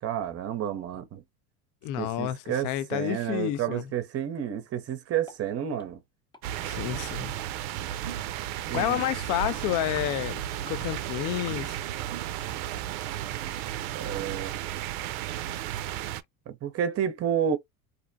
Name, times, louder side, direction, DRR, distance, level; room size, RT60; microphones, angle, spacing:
voice 1, 0.0-1.2 2.0-6.0 8.7-9.0 13.9-14.5 16.5-17.6, right 9 dB, 35° right, 0.7 m, -30 dB
voice 2, 1.8-2.4 2.6-3.9 6.7-7.3 8.7-10.4 10.7-11.8, left 13 dB, 45° left, 0.5 m, -29 dB
sound 1, 5.3-5.4 5.8-5.9 6.3-6.5 6.7-6.8 7.4-7.5 8.1-8.2 8.7-8.9 9.4-9.6 10.0-10.1 10.7-10.8 11.5-11.9 12.4-12.5 13.0-13.1 13.5-13.6, left 3 dB, 10° left, 0.7 m, -47 dB
sound 2, 6.4-16.2, right 12 dB, 70° right, 0.5 m, -34 dB
2.5 x 2.1 x 2.6 m
hypercardioid pair, 85°, 45 cm